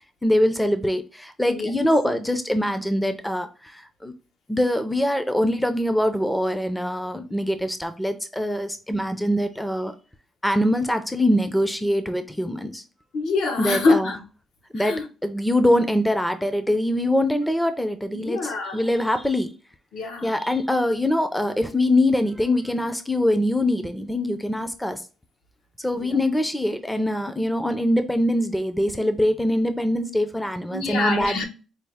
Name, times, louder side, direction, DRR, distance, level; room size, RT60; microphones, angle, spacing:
voice 1, 0.2-4.1 4.5-9.9 10.4-12.8 13.6-14.1 14.7-14.9 15.2-19.5 20.2-25.0 25.8-31.4, left 1 dB, 5° left, 0.4 m, -23 dB
voice 2, 13.1-14.2 14.7-15.1 18.1-19.0 19.9-20.3 25.9-26.2 30.7-31.4, left 3 dB, 85° left, 1.0 m, -25 dB
4.6 x 2.3 x 3.3 m
cardioid pair, 170°, 0 cm